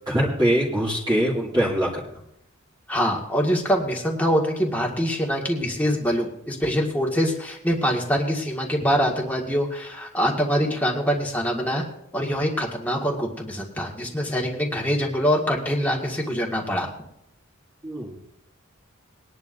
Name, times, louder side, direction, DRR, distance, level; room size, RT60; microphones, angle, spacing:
voice 1, 0.1-1.9 17.8-18.2, equal, 20° right, -8 dB, 2.6 m, -22 dB
voice 2, 2.9-11.8 12.1-16.9, equal, 10° left, -1 dB, 2.0 m, -24 dB
21.5 x 10.5 x 2.7 m, 0.77 s
head